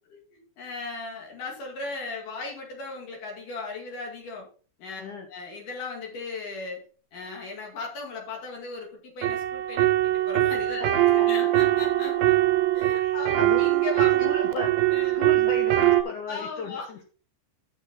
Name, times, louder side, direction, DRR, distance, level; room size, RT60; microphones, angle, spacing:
voice 1, 0.3-4.5 4.8-5.0 5.3-6.8 7.1-10.8 11.3-12.4 12.7-14.5 14.9-15.2 16.3-16.9, left 4 dB, 55° left, 0 dB, 3.3 m, -37 dB
sound 1, 9.2-16.0, right 15 dB, 90° right, 3.1 m, -22 dB
voice 2, 10.8-11.3 11.6-11.7 13.0-13.6 14.2-14.7 15.1-17.0, left 4 dB, 70° left, 3 dB, 1.9 m, -36 dB
9.2 x 7.4 x 3.9 m, 0.39 s
omnidirectional pair, 5.0 m